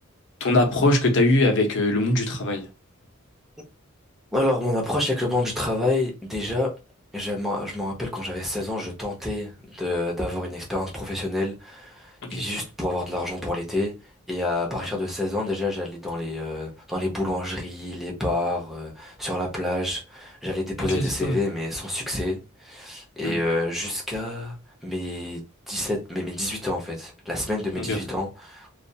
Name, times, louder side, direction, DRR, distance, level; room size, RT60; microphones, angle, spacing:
voice 1, 0.4-2.6 12.2-12.5 20.9-21.4 23.2-23.4 27.8-28.0, left 2 dB, 60° left, 0.7 m, -22 dB
voice 2, 4.3-6.7 7.1-13.9 14.3-24.6 24.8-28.7, left 1 dB, ahead, 0.7 m, -28 dB
2.4 x 2.3 x 2.7 m
head